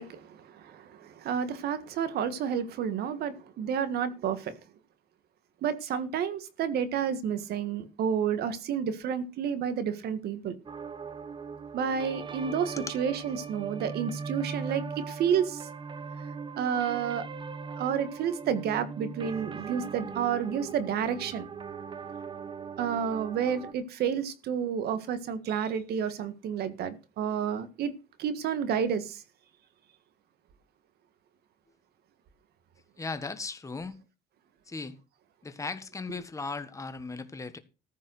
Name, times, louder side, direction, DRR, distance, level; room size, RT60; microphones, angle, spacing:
voice 1, 0.0-4.5 5.6-10.5 11.7-15.7 16.6-17.3 17.8-21.5 22.8-27.9 28.2-29.2, right 8 dB, 70° right, 1.7 m, -30 dB
sound 1, 10.7-23.7, right 5 dB, 30° right, 1.0 m, -40 dB
voice 2, 33.0-34.0 34.6-35.0 35.4-37.6, left 4 dB, 20° left, 1.5 m, -37 dB
14.5 x 5.4 x 6.5 m
cardioid pair, 110°, 17 cm